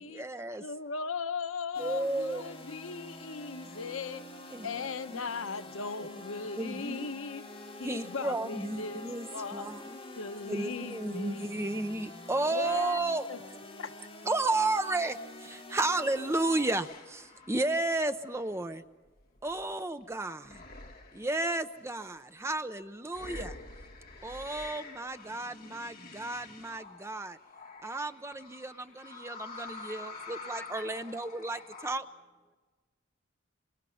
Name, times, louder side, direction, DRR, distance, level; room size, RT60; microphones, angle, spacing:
voice 1, 0.0-0.7 1.8-2.4 4.5-5.2 6.6-7.1 7.8-10.0 10.5-13.3 14.2-18.8 19.4-20.6 21.1-23.5 24.2-27.4 27.8-32.1, right 2 dB, 15° right, 0.6 m, -33 dB
voice 2, 0.6-4.2 4.6-7.4 7.8-9.1 9.3-9.7 10.2-11.7 12.5-13.0 13.3-13.4 13.8-13.9, left 4 dB, 80° left, 0.9 m, -38 dB
sound 1, 1.7-16.8, left 2 dB, 25° left, 3.8 m, -47 dB
sound 2, 15.1-15.4 15.8-20.0 20.4-21.5 22.0-22.1 23.1-31.9, left 3 dB, 45° left, 1.7 m, -48 dB
voice 3, 28.5-31.8 32.4-32.6, left 1 dB, 5° left, 1.1 m, -56 dB
26.5 x 24.0 x 5.7 m
head